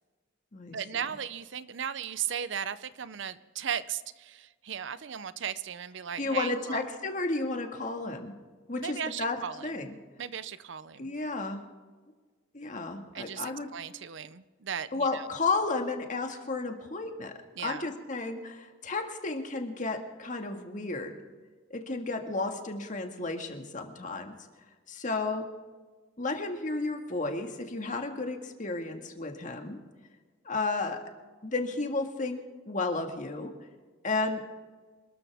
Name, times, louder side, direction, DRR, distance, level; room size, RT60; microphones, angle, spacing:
voice 1, 0.7-6.8 8.8-9.7 10.2-11.1 13.1-15.3 17.6-17.9, right 8 dB, 60° right, 15 dB, 0.6 m, -36 dB
voice 2, 6.2-8.3 8.7-10.0 11.0-11.6 12.5-13.7 14.9-17.3 17.6-21.1 21.7-24.3 24.9-25.5 26.2-29.8 30.5-31.0 31.4-33.5 34.0-34.4, left 3 dB, 40° left, 4 dB, 1.8 m, -32 dB
27.0 x 13.5 x 3.5 m, 1.4 s
head